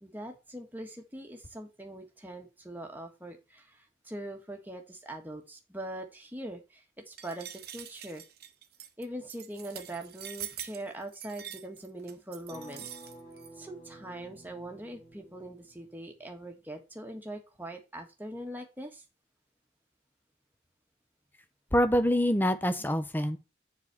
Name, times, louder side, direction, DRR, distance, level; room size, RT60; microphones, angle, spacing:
voice 1, 0.0-8.2 9.0-12.9 13.5-19.0 22.8-22.9, right 1 dB, 10° right, 1.5 m, -42 dB
sound 1, 7.2-13.5, right 11 dB, 55° right, 1.1 m, -44 dB
sound 2, 12.5-16.2, right 1 dB, 30° left, 3.3 m, -51 dB
voice 2, 21.7-23.4, equal, 10° left, 0.8 m, -25 dB
7.4 x 4.1 x 6.8 m
head